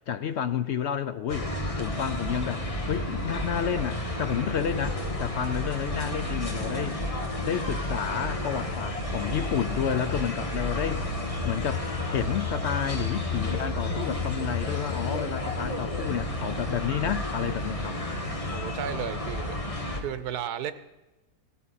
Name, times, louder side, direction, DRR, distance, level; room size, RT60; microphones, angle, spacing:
voice 1, 0.0-1.5 1.8-7.0 7.4-11.0 11.4-11.8 12.1-18.0, left 8 dB, 65° left, 12 dB, 0.7 m, -30 dB
sound 1, 1.3-20.0, left 2 dB, 25° left, 1.5 m, -31 dB
voice 2, 18.5-19.5 20.0-20.7, right 9 dB, 90° right, 13 dB, 1.3 m, -33 dB
16.5 x 13.0 x 4.2 m, 1.0 s
omnidirectional pair, 1.6 m